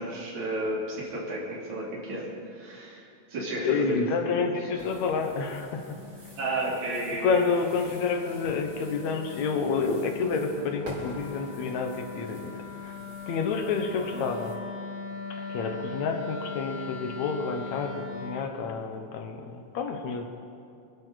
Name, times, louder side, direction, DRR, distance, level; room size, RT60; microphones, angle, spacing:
voice 1, 0.0-2.3 2.5-3.0 3.3-4.1 4.4-4.5 6.4-7.4 14.0-14.3, right 1 dB, 75° right, -5 dB, 4.5 m, -32 dB
voice 2, 3.6-6.0 7.2-12.9 13.3-14.6 15.3-20.3, left 5 dB, 70° left, 5 dB, 2.5 m, -29 dB
sound 1, 4.8-14.6, equal, 30° right, 3.7 m, -48 dB
Wind instrument woodwind instrument, 5.6-18.5, left 5 dB, 45° left, 1.2 m, -40 dB
26.0 x 11.5 x 4.1 m, 2.6 s
omnidirectional pair, 3.4 m